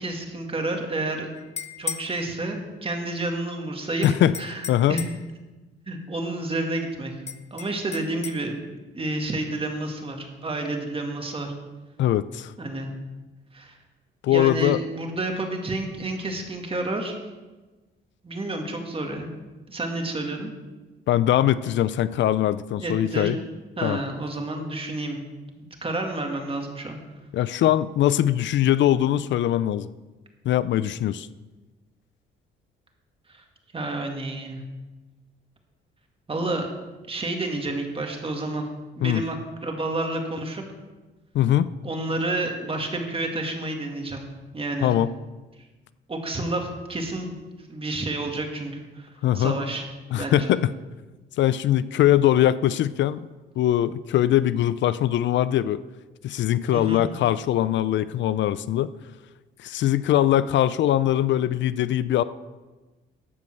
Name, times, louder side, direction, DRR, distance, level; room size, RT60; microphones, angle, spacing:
voice 1, 0.0-1.3 1.8-5.0 5.9-7.1 7.5-8.6 8.9-11.5 12.6-12.9 13.5-13.8 14.3-17.2 18.2-19.3 19.7-20.5 22.8-23.4 23.8-25.2 25.6-27.0 33.3-33.4 33.7-34.6 36.3-36.7 37.1-38.7 39.0-39.4 39.6-40.6 41.8-44.2 44.5-44.9 46.1-47.4 47.7-49.1 49.3-49.8 50.1-50.5 56.7-57.1, right 2 dB, 30° right, 3 dB, 2.1 m, -30 dB
sound 1, 1.4-2.1 4.0-5.3 7.3-8.4, left 6 dB, 35° left, 0.8 m, -35 dB
voice 2, 4.0-4.3 4.7-5.0 12.0-12.5 14.2-14.8 21.1-23.4 23.8-24.0 27.3-29.9 30.5-31.3 39.0-39.2 41.3-41.7 44.8-45.1 49.2-49.6 50.1-50.7 51.4-53.3 53.6-55.8 56.2-58.9 59.6-62.2, left 12 dB, 70° left, 16 dB, 0.4 m, -21 dB
12.5 x 5.3 x 7.9 m, 1.2 s
cardioid pair, 90°, 20 cm